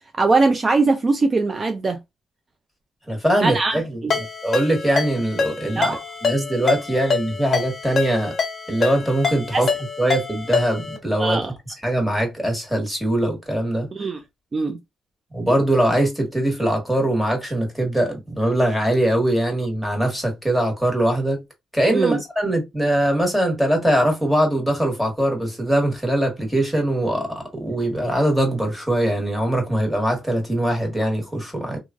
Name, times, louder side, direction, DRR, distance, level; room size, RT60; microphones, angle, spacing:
voice 1, 0.2-2.0 3.4-4.1 5.8-6.0 9.5-9.7 11.2-11.5 13.9-14.2 14.5-14.8 21.9-22.2, right 3 dB, 35° right, 0.4 m, -21 dB
voice 2, 3.1-4.0 4.4-5.9 6.2-8.3 8.7-9.7 10.0-11.4 11.8-13.9 15.3-21.4 21.7-31.8, right 1 dB, ahead, 1.4 m, -22 dB
Ringtone, 4.1-11.0, left 5 dB, 40° left, 1.2 m, -26 dB
3.0 x 2.4 x 2.4 m
cardioid pair, 90°, 0 cm